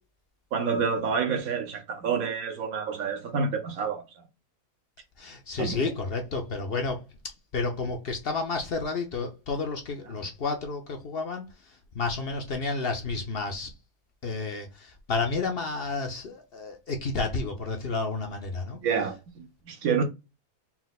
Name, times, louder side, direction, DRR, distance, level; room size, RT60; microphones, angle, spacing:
voice 1, 0.5-4.0 5.6-5.8 18.8-20.0, right 5 dB, 65° right, 1.3 m, -28 dB
voice 2, 5.2-7.1 7.5-13.7 14.2-18.8, left 3 dB, 55° left, 0.7 m, -31 dB
4.3 x 2.2 x 4.0 m
omnidirectional pair, 1.7 m